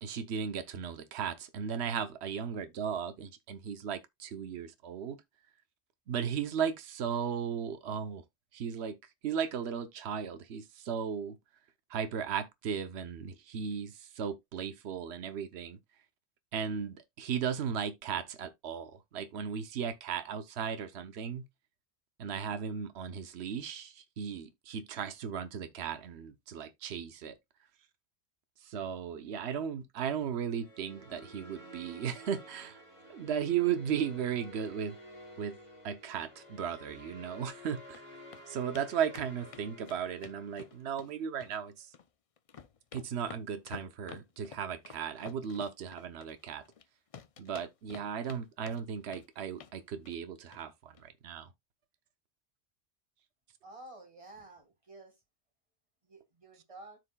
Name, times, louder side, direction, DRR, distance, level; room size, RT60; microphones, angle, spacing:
voice 1, 0.0-5.2 6.1-8.2 8.5-9.0 9.2-11.4 11.9-15.8 16.5-21.4 22.2-27.4 28.6-32.8 33.1-35.0 35.4-35.6 35.8-38.1 38.5-41.9 42.9-46.6 47.4-51.5, right 7 dB, 75° right, 1.0 m, -36 dB
sound 1, 30.5-40.9, equal, 30° left, 4.7 m, -52 dB
sound 2, 37.5-38.0 38.3-38.4 38.7-38.9 39.1-41.1 41.4-42.1 42.4-46.8 47.1-48.4 48.7-49.3 49.6-49.8 50.0-50.2 50.5-50.6 50.9-51.0, left 6 dB, 45° left, 0.5 m, -50 dB
voice 2, 53.6-55.1 56.1-57.0, right 2 dB, 30° right, 1.9 m, -51 dB
13.5 x 4.8 x 2.2 m
omnidirectional pair, 1.1 m